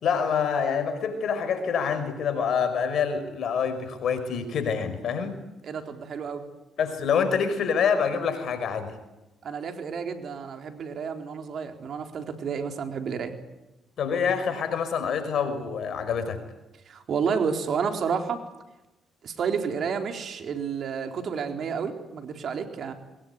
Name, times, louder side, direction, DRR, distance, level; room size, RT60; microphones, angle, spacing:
voice 1, 0.0-5.4 6.8-8.9 14.0-16.4, left 6 dB, 65° left, 10 dB, 5.5 m, -26 dB
voice 2, 5.6-6.4 9.4-13.3 16.9-18.4 19.2-22.9, right 6 dB, 60° right, 5 dB, 4.0 m, -30 dB
23.0 x 21.0 x 9.6 m, 1.0 s
supercardioid pair, 55°, 0 cm